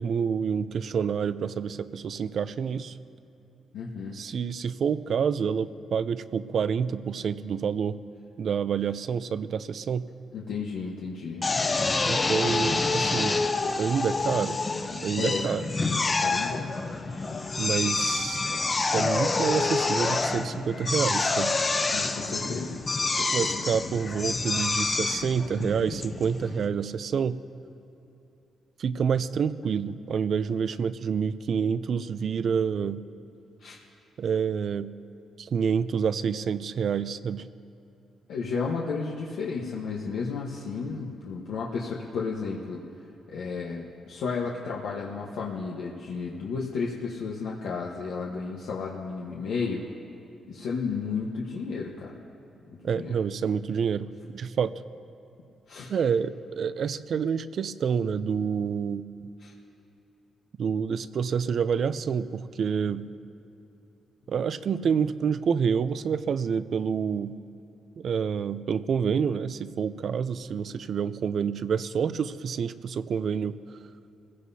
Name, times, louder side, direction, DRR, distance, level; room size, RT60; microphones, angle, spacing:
voice 1, 0.0-3.0 4.1-8.0 8.4-10.1 12.0-13.4 13.8-14.6 15.0-15.6 17.6-18.5 18.9-21.6 23.3-27.4 28.8-33.0 34.2-34.9 35.4-37.5 52.8-54.1 54.3-54.7 55.9-59.0 60.6-63.1 64.3-67.4 68.0-73.6, right 7 dB, 55° right, 14 dB, 0.5 m, -28 dB
voice 2, 3.7-4.2 10.3-11.4 15.2-15.4 16.0-16.7 21.9-23.6 33.6-33.8 38.3-42.8 43.3-49.8 50.5-52.2 52.7-53.1 55.7-55.9 59.4-59.5, left 5 dB, 85° left, -3 dB, 1.2 m, -33 dB
Drill, 11.4-26.7, left 3 dB, 30° left, 0.8 m, -27 dB
25.5 x 16.0 x 2.8 m, 2.9 s
cardioid pair, 110°, 0 cm